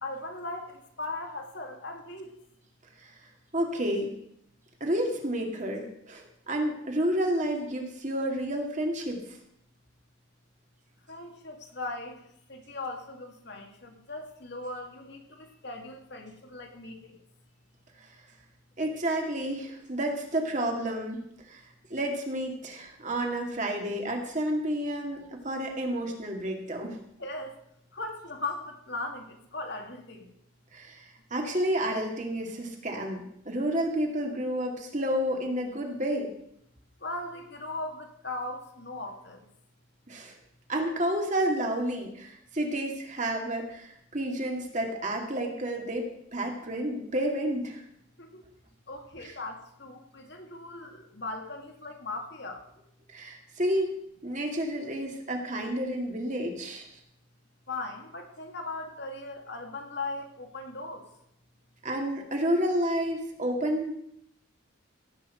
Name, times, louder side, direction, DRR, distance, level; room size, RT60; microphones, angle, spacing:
voice 1, 0.0-2.3 11.1-12.2 12.5-17.2 27.2-27.6 27.9-30.3 37.0-39.5 48.2-48.4 48.9-52.6 57.7-61.1, left 2 dB, 55° left, 3 dB, 2.0 m, -38 dB
voice 2, 3.5-4.1 4.8-9.2 18.0-18.1 18.8-21.2 21.5-21.6 21.9-27.0 30.7-36.3 40.1-40.3 40.7-47.8 49.2-49.4 53.1-53.9 54.2-56.9 61.8-63.9, right 1 dB, 35° right, 2 dB, 2.2 m, -30 dB
16.5 x 5.7 x 7.8 m, 0.74 s
head